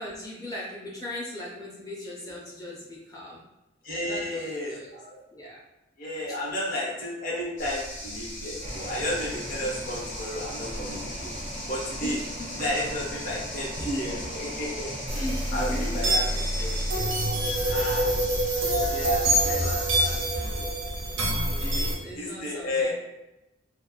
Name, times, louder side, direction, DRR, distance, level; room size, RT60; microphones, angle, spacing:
voice 1, 0.0-3.4 3.9-5.0 5.3-5.6 6.3-6.4 12.0-12.6 15.2-16.0 19.1-19.6 21.2-22.9, left 1 dB, 20° left, -4 dB, 0.5 m, -39 dB
voice 2, 3.8-5.2 6.0-11.3 11.7-12.2 12.6-15.2 15.5-16.2 16.6-18.1 18.7-20.2 20.5-20.7 21.6-22.9, left 1 dB, 50° left, -4 dB, 0.8 m, -33 dB
sound 1, 7.6-20.3, left 1 dB, 80° left, 0.9 m, -38 dB
sound 2, 8.6-17.3, right 1 dB, 40° right, 0.4 m, -40 dB
sound 3, 15.1-21.9, right 1 dB, 80° right, 0.6 m, -26 dB
3.0 x 2.1 x 2.3 m, 0.95 s
head